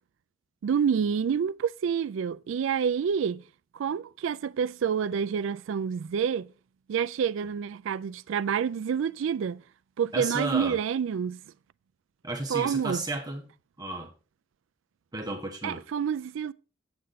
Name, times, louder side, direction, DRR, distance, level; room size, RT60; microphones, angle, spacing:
voice 1, 0.6-3.4 3.7-6.5 6.9-9.6 10.0-11.4 12.5-13.0 15.6-16.5, right 7 dB, 75° right, 0.3 m, -28 dB
voice 2, 10.1-10.8 12.2-13.5 13.8-14.1 15.1-15.8, right 2 dB, 20° right, 1.0 m, -33 dB
7.9 x 7.8 x 3.9 m
head